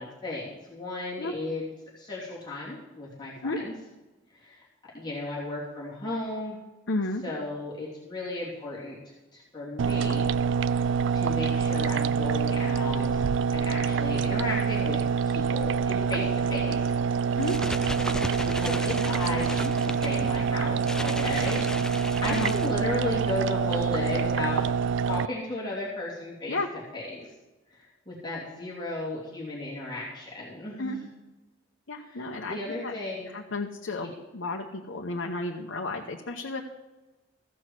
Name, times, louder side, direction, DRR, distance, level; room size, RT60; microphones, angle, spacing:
voice 1, 0.0-1.6 1.9-3.7 4.4-4.6 4.9-6.6 7.2-9.0 9.3-10.3 11.1-13.2 13.5-15.0 15.2-16.9 18.4-24.6 25.0-26.6 26.9-27.2 27.8-31.0 32.0-33.3 34.0-34.1, left 2 dB, 25° left, -6 dB, 3.2 m, -35 dB
voice 2, 6.9-7.2 17.4-17.6 22.3-22.5 26.5-26.7 30.8-31.0 31.9-32.9 33.3-36.6, left 2 dB, 90° left, 0 dB, 1.0 m, -32 dB
sound 1, 9.8-25.3, right 6 dB, 70° right, 0.3 m, -26 dB
sound 2, 17.3-23.2, left 1 dB, 5° left, 0.4 m, -36 dB
14.5 x 6.3 x 7.6 m, 1.1 s
head